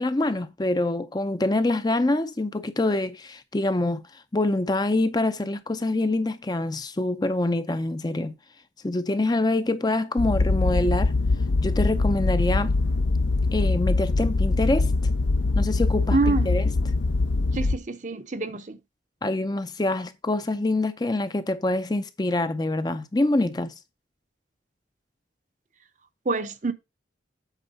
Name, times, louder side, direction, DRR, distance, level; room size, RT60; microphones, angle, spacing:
voice 1, 0.0-4.0 4.3-8.3 8.8-11.1 11.6-12.8 13.5-14.9 15.5-16.7 19.2-23.7, left 2 dB, 20° left, 0.5 m, -25 dB
sound 1, 10.2-17.8, left 3 dB, 75° left, 0.5 m, -23 dB
voice 2, 16.1-16.5 17.5-18.8 26.3-26.7, right 3 dB, 40° right, 0.7 m, -26 dB
8.2 x 4.4 x 5.3 m
head